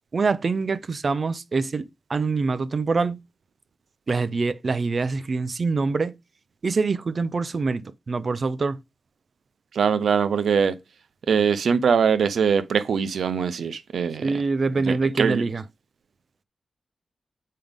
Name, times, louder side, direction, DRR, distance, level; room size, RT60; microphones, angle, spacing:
voice 1, 0.1-3.2 4.1-6.1 6.6-7.8 8.1-8.8 14.2-15.6, right 4 dB, 55° right, 0.7 m, -25 dB
voice 2, 9.7-10.7 11.3-14.4 14.9-15.4, right 6 dB, 85° right, 0.8 m, -22 dB
7.7 x 5.1 x 3.6 m
cardioid pair, 65°, 0 cm